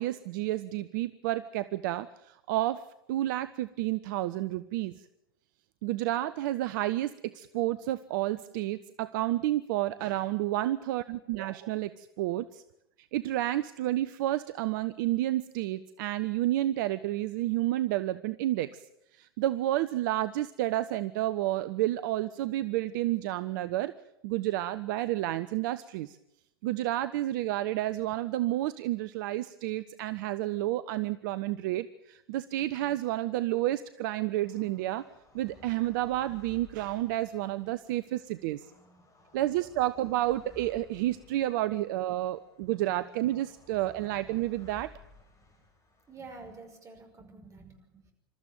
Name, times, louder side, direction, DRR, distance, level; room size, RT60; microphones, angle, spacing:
voice 1, 0.0-2.8 3.1-5.1 5.8-12.6 13.0-18.8 19.1-23.9 24.2-26.2 26.6-35.0 35.3-38.7 39.3-44.9, right 15 dB, 55° right, 14 dB, 0.7 m, -30 dB
sound 1, 34.4-46.8, left 3 dB, 25° left, 5.2 m, -58 dB
voice 2, 46.1-48.1, right 3 dB, 25° right, 5 dB, 5.4 m, -48 dB
27.5 x 13.5 x 9.1 m, 0.83 s
figure-of-eight pair, 80°, 12 cm